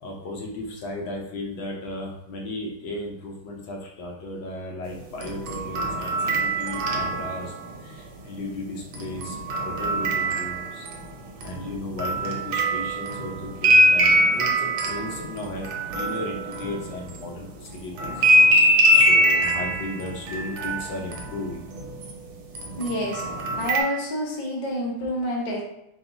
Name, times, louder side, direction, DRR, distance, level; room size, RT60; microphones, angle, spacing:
voice 1, 0.0-7.5 7.8-10.9 11.4-18.2 18.6-21.6, left 2 dB, 70° left, -1 dB, 1.5 m, -35 dB
sound 1, 5.1-7.7 8.9-11.0 11.4-17.3 18.0-22.1 22.5-23.8, right 1 dB, 80° right, 1.5 m, -22 dB
voice 2, 22.8-23.2 23.5-25.6, equal, 45° left, -4 dB, 0.6 m, -28 dB
4.1 x 2.3 x 3.9 m, 0.81 s
omnidirectional pair, 2.2 m